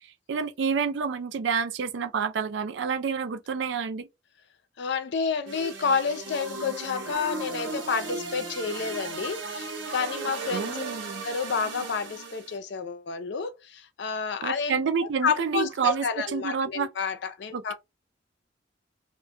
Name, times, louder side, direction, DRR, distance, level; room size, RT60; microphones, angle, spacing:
voice 1, 0.0-4.1 10.5-11.2 14.4-16.9 17.5-17.7, right 6 dB, 70° right, 0.4 m, -29 dB
voice 2, 4.8-10.9 11.2-14.8 15.2-17.7, left 5 dB, 65° left, 0.5 m, -30 dB
sound 1, 5.5-12.6, right 3 dB, 90° right, 0.7 m, -36 dB
2.2 x 2.1 x 2.6 m
head